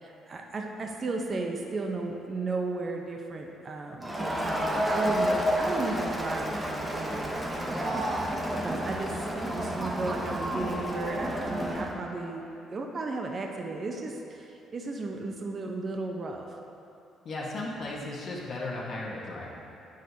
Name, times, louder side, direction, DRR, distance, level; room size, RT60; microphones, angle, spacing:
voice 1, 0.0-12.4 12.7-16.4, right 3 dB, 40° right, 1 dB, 0.6 m, -35 dB
Crowd, 4.0-11.9, equal, 10° right, 0.9 m, -30 dB
voice 2, 17.2-19.6, left 2 dB, 55° left, -6 dB, 1.1 m, -35 dB
9.1 x 6.4 x 2.7 m, 2.9 s
cardioid pair, 100°, 0 cm